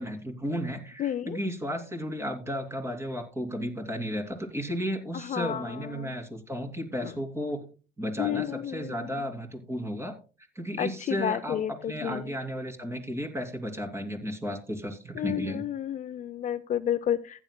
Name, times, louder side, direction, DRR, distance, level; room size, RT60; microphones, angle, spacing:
voice 1, 0.0-7.6 8.0-10.1 10.5-15.6, equal, 15° right, 3 dB, 2.8 m, -34 dB
voice 2, 1.0-1.4 5.1-6.1 8.2-8.9 10.8-12.3 15.2-17.4, left 10 dB, 50° left, 14 dB, 0.5 m, -31 dB
15.0 x 10.0 x 2.2 m, 0.35 s
cardioid pair, 110°, 17 cm